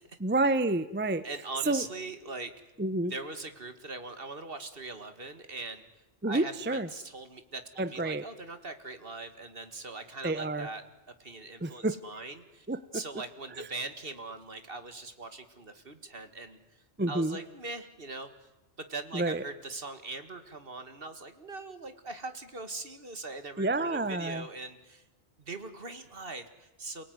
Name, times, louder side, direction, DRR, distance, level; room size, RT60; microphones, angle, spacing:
voice 1, 0.2-1.2 1.7-1.8 2.8-3.1 6.2-6.9 7.8-8.2 10.2-10.7 11.6-12.0 12.7-12.8 13.6-13.7 17.0-17.4 19.1-19.4 23.6-24.5, right 2 dB, 10° right, 14 dB, 0.7 m, -29 dB
voice 2, 1.2-2.5 3.1-5.9 6.2-10.8 11.2-12.7 12.9-16.6 17.1-18.5 18.8-25.0 25.4-27.0, right 3 dB, 55° right, 10 dB, 2.2 m, -41 dB
29.0 x 18.5 x 9.6 m, 1.0 s
omnidirectional pair, 1.1 m